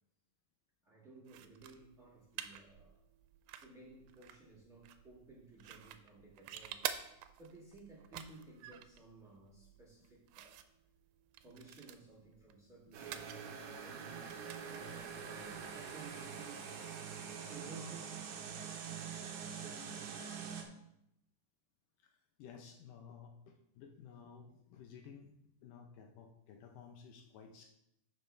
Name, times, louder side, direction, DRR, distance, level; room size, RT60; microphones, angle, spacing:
voice 1, 0.8-3.0 3.6-6.8 7.4-10.7 11.4-16.7 17.4-18.3 19.4-20.2, right 3 dB, 30° right, -4 dB, 1.5 m, -56 dB
sound 1, 1.3-16.4, right 11 dB, 85° right, 2.4 m, -50 dB
sound 2, 12.9-20.6, right 6 dB, 70° right, 2.3 m, -45 dB
voice 2, 22.0-27.7, left 6 dB, 75° left, 4 dB, 2.2 m, -55 dB
12.0 x 5.3 x 3.3 m, 0.80 s
omnidirectional pair, 4.0 m